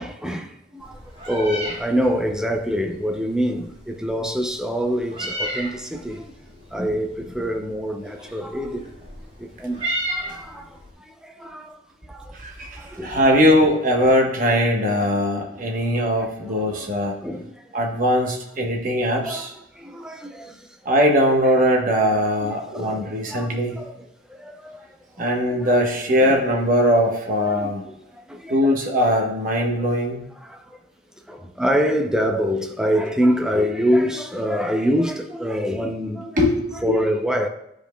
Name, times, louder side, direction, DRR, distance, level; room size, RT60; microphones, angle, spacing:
voice 1, 0.0-6.3 6.7-8.9 9.4-12.4 12.7-13.4 16.2-17.8 18.9-19.5 19.7-20.8 21.5-21.6 22.4-23.9 24.3-25.0 25.5-25.7 26.1-26.4 27.5-28.8 29.0-29.1 29.8-29.9 30.4-30.8 31.3-36.4 36.8-37.5, equal, 5° right, 0.5 m, -26 dB
Meow, 0.8-10.9, right 1 dB, 30° right, 1.9 m, -34 dB
voice 2, 12.3-17.1 17.7-19.5 20.8-23.8 25.2-27.8 28.5-30.3 36.4-37.0, equal, 45° right, 1.1 m, -20 dB
11.5 x 5.2 x 2.2 m
head